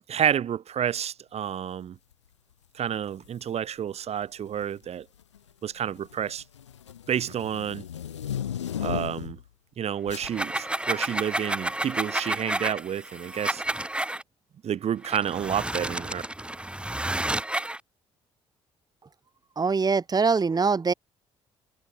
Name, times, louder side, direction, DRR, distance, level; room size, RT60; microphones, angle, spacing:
voice 1, 0.1-2.0 2.7-5.1 5.6-6.4 7.1-7.8 8.8-9.4 9.8-13.6 14.6-16.2, right 9 dB, 45° right, 2.6 m, -29 dB
sound 1, 3.1-3.4 4.4-4.8 5.2-9.5 10.1-10.3, left 9 dB, 80° left, 3.3 m, -35 dB
sound 2, 10.1-14.2 15.0-17.8, right 1 dB, 5° right, 1.7 m, -30 dB
voice 2, 19.6-20.9, right 4 dB, 25° right, 2.4 m, -23 dB
figure-of-eight pair, 50°, 15 cm